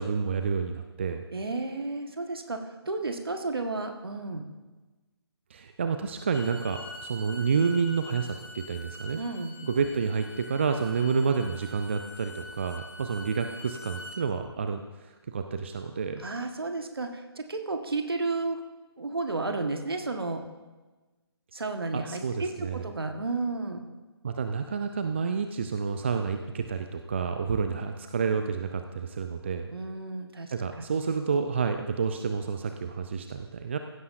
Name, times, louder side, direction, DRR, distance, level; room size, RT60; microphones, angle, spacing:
voice 1, 0.0-1.2 5.5-9.2 9.6-16.2 21.9-22.9 24.2-29.7 30.5-33.8, right 5 dB, 25° right, 7 dB, 0.4 m, -29 dB
voice 2, 1.3-4.4 9.1-9.5 16.2-18.6 19.0-20.4 21.5-23.8 29.7-30.8, right 3 dB, 60° right, 5 dB, 1.5 m, -32 dB
Bowed string instrument, 6.2-14.2, left 1 dB, 50° left, 4.1 m, -45 dB
16.0 x 12.5 x 2.6 m, 1.2 s
figure-of-eight pair, 150°, 14 cm